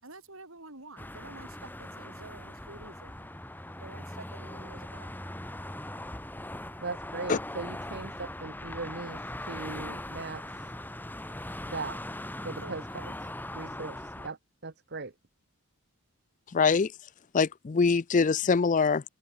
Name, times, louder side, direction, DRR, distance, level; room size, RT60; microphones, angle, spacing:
voice 1, 0.0-3.1 3.8-5.1 12.6-13.1, right 2 dB, 65° right, 7.1 m, -49 dB
sound 1, 1.0-14.3, left 1 dB, 10° left, 3.6 m, -40 dB
voice 2, 6.8-10.7 11.7-12.0 12.4-14.4 14.6-15.1, right 3 dB, 50° right, 1.1 m, -39 dB
voice 3, 16.5-16.9 17.3-19.0, left 5 dB, 35° left, 0.4 m, -23 dB
head